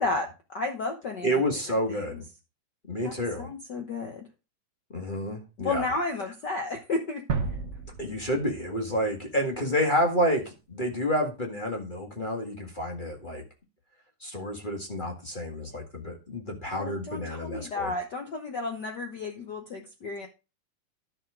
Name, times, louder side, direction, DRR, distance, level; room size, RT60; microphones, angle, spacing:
voice 1, 0.0-1.4 1.9-2.0 3.0-4.3 5.6-7.2 16.6-20.3, left 3 dB, 60° left, 4 dB, 1.1 m, -32 dB
voice 2, 1.2-2.2 2.9-3.5 4.9-5.9 8.0-13.4 14.2-17.9, equal, 25° left, 2 dB, 1.3 m, -29 dB
sound 1, 7.3-10.1, right 5 dB, 70° right, 0.7 m, -34 dB
11.0 x 6.5 x 3.7 m, 0.29 s
omnidirectional pair, 3.4 m